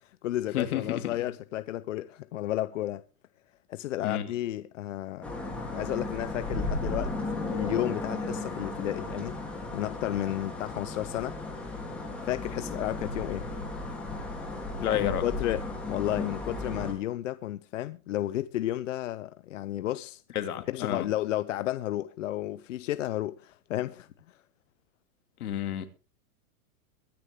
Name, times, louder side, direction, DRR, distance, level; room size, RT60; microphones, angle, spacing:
voice 1, 0.0-3.0 3.7-5.4 5.7-7.1 7.5-9.4 9.7-11.4 12.2-13.4 14.9-20.2 20.7-24.4, left 14 dB, 55° left, 0.7 m, -32 dB
voice 2, 0.5-1.1 4.0-4.3 14.8-15.3 20.3-21.1 25.4-25.9, left 10 dB, 75° left, 2.5 m, -30 dB
sound 1, 5.2-16.9, left 2 dB, 5° left, 2.9 m, -35 dB
22.0 x 10.0 x 3.6 m
supercardioid pair, 175°, 45 cm